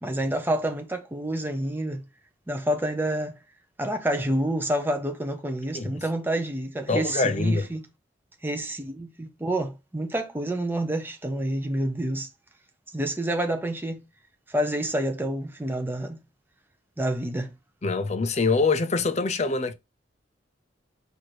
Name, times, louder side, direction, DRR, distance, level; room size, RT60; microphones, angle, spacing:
voice 1, 0.0-2.0 2.5-3.4 3.8-7.8 8.4-12.3 12.9-14.0 14.5-16.2 17.0-17.5, right 1 dB, 10° right, 0.7 m, -28 dB
voice 2, 6.9-7.7 17.8-19.7, left 3 dB, 35° left, 0.5 m, -24 dB
4.6 x 2.6 x 4.4 m
head